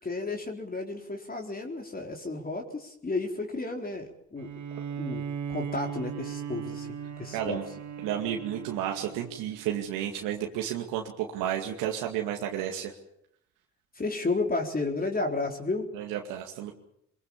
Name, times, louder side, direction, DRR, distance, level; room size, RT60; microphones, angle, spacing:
voice 1, 0.0-4.5 5.0-5.2 5.5-7.6 13.9-15.9, left 3 dB, 25° left, 2 dB, 4.1 m, -32 dB
Bowed string instrument, 4.4-9.8, right 7 dB, 60° right, 3.4 m, -38 dB
voice 2, 7.3-7.6 8.0-12.9 15.9-16.7, right 10 dB, 80° right, 2 dB, 2.3 m, -32 dB
23.0 x 22.5 x 7.3 m, 0.76 s
hypercardioid pair, 55°, 33 cm